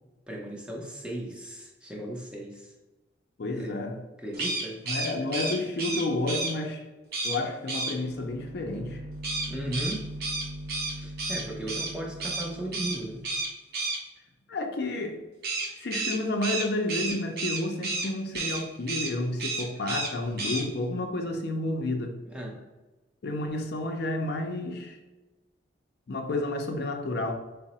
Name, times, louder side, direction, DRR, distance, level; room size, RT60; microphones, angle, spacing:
voice 1, 0.3-2.7 3.6-3.8 4.2-4.8 9.5-10.1 10.9-13.2 22.2-22.6, right 1 dB, 5° right, -1 dB, 0.4 m, -36 dB
voice 2, 3.4-4.0 4.9-6.8 7.2-9.0 14.5-15.2 15.8-22.2 23.2-25.0 26.1-27.4, left 2 dB, 55° left, 4 dB, 0.4 m, -30 dB
sound 1, 4.3-6.5 7.1-7.4 7.7-7.9 9.2-11.9 12.2-12.5 12.7-13.0 13.2-14.0 15.4-18.1 18.3-18.6 18.9-19.1 19.4-20.1 20.4-20.6, right 3 dB, 50° right, 0.7 m, -31 dB
sound 2, 8.1-13.4, right 1 dB, 90° right, 0.7 m, -41 dB
3.6 x 2.0 x 4.0 m, 1.1 s
head